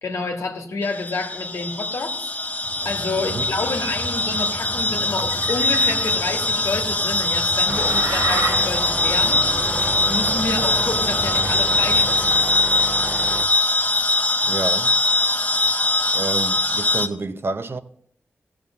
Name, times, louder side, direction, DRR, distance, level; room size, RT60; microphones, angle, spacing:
voice 1, 0.0-2.2 2.8-9.4 10.1-12.4, left 3 dB, 80° left, 1.7 m, -29 dB
sound 1, 0.8-17.1, left 2 dB, 35° left, 0.8 m, -22 dB
sound 2, 2.7-12.4, right 2 dB, 70° right, 2.8 m, -33 dB
sound 3, 7.7-13.5, right 2 dB, 25° right, 0.7 m, -31 dB
voice 2, 14.4-15.0 16.1-17.8, right 3 dB, 50° right, 0.8 m, -29 dB
14.5 x 6.3 x 7.3 m
cardioid pair, 50°, 5 cm